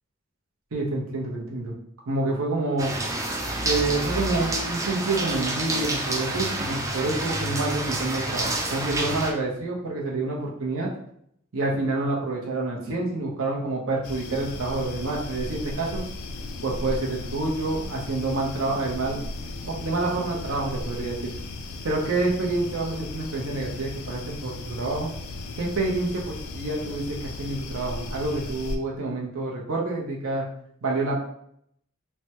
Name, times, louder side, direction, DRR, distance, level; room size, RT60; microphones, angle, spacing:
voice 1, 0.7-1.7 2.1-2.9 3.6-10.9 11.5-16.0 16.6-19.3 19.6-21.2 21.8-25.1 25.6-30.4 30.8-31.2, right 2 dB, 70° right, -2 dB, 0.7 m, -28 dB
sound 1, 2.8-9.3, right 2 dB, 15° right, 0.3 m, -28 dB
sound 2, 14.0-28.8, left 2 dB, 85° left, 0.4 m, -36 dB
3.2 x 2.1 x 2.8 m, 0.70 s
head